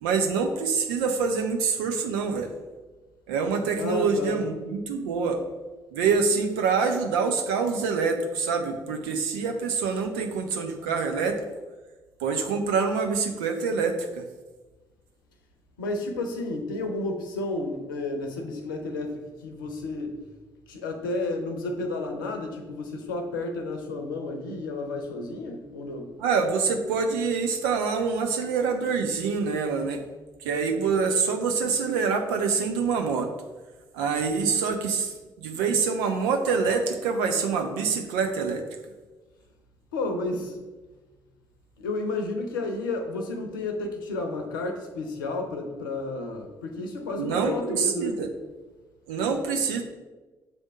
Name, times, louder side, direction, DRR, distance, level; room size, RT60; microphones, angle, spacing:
voice 1, 0.0-2.5 3.3-5.4 5.9-11.4 12.2-14.2 26.2-30.0 30.4-33.3 33.9-35.1 35.4-38.6 47.2-48.3 49.1-49.8, right 5 dB, 70° right, 5 dB, 0.7 m, -26 dB
voice 2, 3.8-4.4 15.8-20.2 20.7-26.1 39.9-40.6 41.8-48.2, left 2 dB, 80° left, 4 dB, 0.7 m, -31 dB
6.8 x 3.5 x 5.0 m, 1.2 s
figure-of-eight pair, 45°, 11 cm